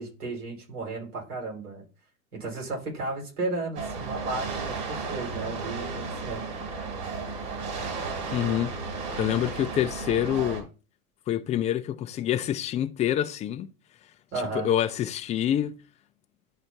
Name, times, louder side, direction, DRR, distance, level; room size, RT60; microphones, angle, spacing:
voice 1, 0.0-1.8 2.3-6.5 14.3-14.7, right 3 dB, 85° right, 4.3 m, -34 dB
sound 1, 3.8-10.6, right 4 dB, 55° right, 2.9 m, -34 dB
voice 2, 8.3-8.7 9.2-10.7 11.3-13.7 14.5-15.8, left 11 dB, 15° left, 0.3 m, -26 dB
11.0 x 4.3 x 2.7 m
hypercardioid pair, 105°, 44 cm